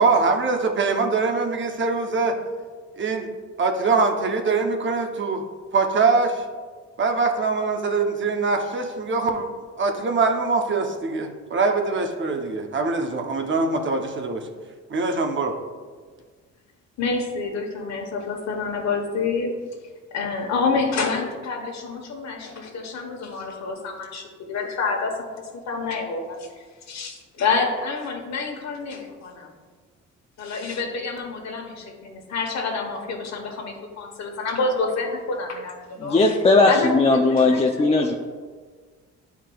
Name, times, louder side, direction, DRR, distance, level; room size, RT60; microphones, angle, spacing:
voice 1, 0.0-2.4 3.0-3.3 3.6-5.4 5.7-6.4 7.0-9.5 9.8-14.4 14.9-15.5, right 4 dB, 40° right, 4 dB, 0.7 m, -23 dB
voice 2, 17.0-19.5 20.1-26.5 26.9-29.5 30.4-36.4 36.7-38.2, left 4 dB, 65° left, 2 dB, 1.2 m, -28 dB
voice 3, 36.0-38.1, left 3 dB, 20° left, 1 dB, 0.4 m, -18 dB
9.8 x 4.7 x 2.3 m, 1.5 s
cardioid pair, 90°, 30 cm